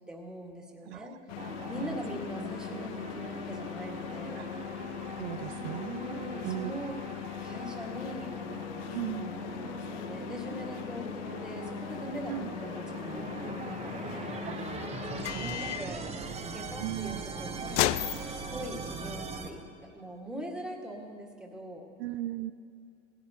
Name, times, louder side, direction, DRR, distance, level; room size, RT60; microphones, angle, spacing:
voice 1, 0.1-4.5 5.9-7.0 7.4-14.4 15.0-16.1 16.4-18.0 18.3-21.9, equal, ahead, -1 dB, 1.8 m, -42 dB
voice 2, 0.9-2.0 2.4-2.8 4.3-4.5 5.2-6.7 8.9-9.3 12.3-12.5 14.4-14.6 15.1-15.5 16.8-17.2 22.0-22.5, right 15 dB, 70° right, 10 dB, 0.5 m, -38 dB
sound 1, 1.3-19.0, left 15 dB, 75° left, 0.5 m, -38 dB
sound 2, 1.4-19.5, right 4 dB, 15° right, 1.1 m, -41 dB
17.5 x 16.0 x 2.9 m, 2.3 s
supercardioid pair, 115°, 36 cm